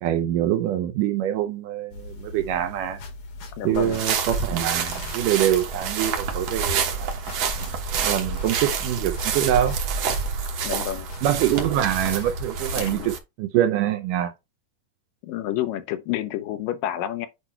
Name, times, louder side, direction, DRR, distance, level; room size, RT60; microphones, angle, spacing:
voice 1, 0.0-3.0 3.6-7.1 8.0-9.8 11.2-14.3, right 11 dB, 75° right, 2.1 m, -24 dB
sound 1, 1.9-12.8, left 2 dB, 55° left, 1.7 m, -39 dB
voice 2, 3.6-4.0 10.6-11.1 12.8-13.1 15.2-17.3, left 12 dB, 80° left, 2.3 m, -29 dB
sound 2, 3.7-13.2, right 6 dB, 60° right, 1.8 m, -28 dB
8.2 x 2.8 x 4.4 m
omnidirectional pair, 4.1 m